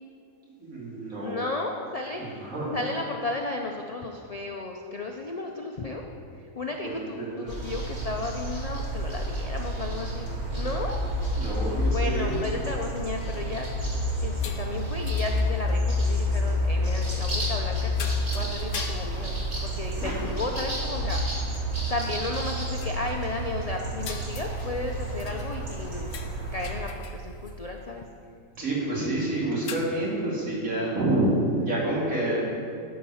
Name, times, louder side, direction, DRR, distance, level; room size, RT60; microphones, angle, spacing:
voice 1, 0.4-1.3 2.2-2.8 6.8-7.5 11.4-12.4 19.2-19.3 20.0-20.1 28.6-32.4, right 1 dB, 70° right, -6 dB, 2.9 m, -28 dB
voice 2, 1.2-6.0 6.4-11.0 11.9-13.7 14.2-19.3 19.6-21.5 21.9-26.1 26.5-28.0, left 2 dB, 65° left, 2 dB, 0.3 m, -34 dB
sound 1, 7.5-26.8, equal, 50° right, 1.9 m, -29 dB
sound 2, 14.4-15.9 17.4-17.6 17.9-20.1 20.6-20.7 20.9-21.0 21.5-21.6 22.0-22.1 22.7-23.2 24.0-25.8 26.1-27.6 29.6-29.8, left 7 dB, 90° left, 1.2 m, -43 dB
12.5 x 4.7 x 5.6 m, 2.4 s
omnidirectional pair, 1.5 m